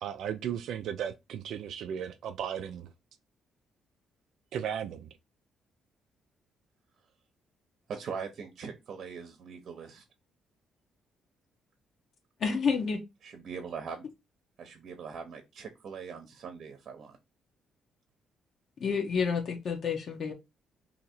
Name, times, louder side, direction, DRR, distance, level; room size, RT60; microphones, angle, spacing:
voice 1, 0.0-2.9 4.5-5.1, right 9 dB, 75° right, 0.3 m, -35 dB
voice 2, 7.9-10.0 13.2-14.1 14.6-17.2, right 6 dB, 60° right, 0.7 m, -41 dB
voice 3, 12.4-13.0 18.8-20.3, left 5 dB, 60° left, 0.9 m, -29 dB
2.8 x 2.7 x 4.2 m
cardioid pair, 90°, 0 cm